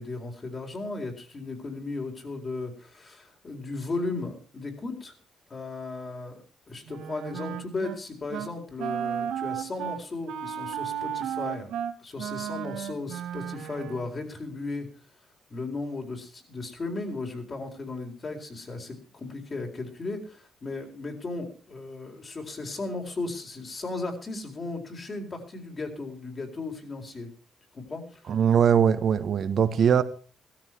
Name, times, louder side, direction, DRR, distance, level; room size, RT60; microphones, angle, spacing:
voice 1, 0.0-5.1 5.5-14.9 15.5-27.3 27.7-28.4, left 3 dB, 35° left, 3 dB, 4.3 m, -36 dB
Wind instrument woodwind instrument, 6.9-8.0 8.3-8.5 8.8-14.1, right 9 dB, 80° right, 1.8 m, -34 dB
voice 2, 28.3-30.0, right 8 dB, 60° right, 11 dB, 1.5 m, -21 dB
16.5 x 13.5 x 4.7 m, 0.39 s
cardioid pair, 90°, 0 cm